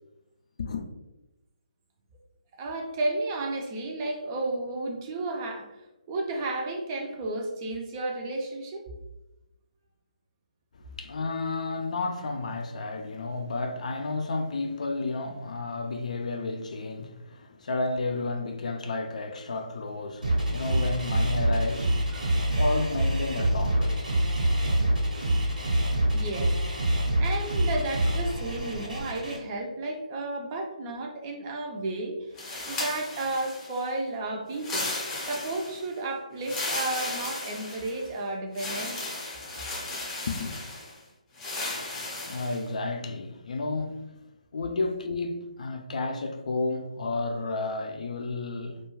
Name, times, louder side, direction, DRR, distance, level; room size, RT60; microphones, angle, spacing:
voice 1, 2.6-5.8 6.1-8.8 22.1-22.6 26.1-26.8 27.2-32.3 32.6-34.9 35.3-39.1, right 2 dB, 25° right, 0.4 m, -33 dB
voice 2, 10.8-22.1 22.6-24.1 24.7-24.8 40.3-40.5 42.0-44.1 44.5-48.8, left 3 dB, 60° left, 0.4 m, -32 dB
sound 1, 20.2-29.4, right 1 dB, 85° right, 1.0 m, -26 dB
sound 2, 32.4-33.9 34.5-35.9 36.4-38.1 38.5-40.9 41.4-42.6, left 2 dB, 15° left, 0.7 m, -35 dB
2.3 x 2.2 x 3.0 m
figure-of-eight pair, 150°, 4 cm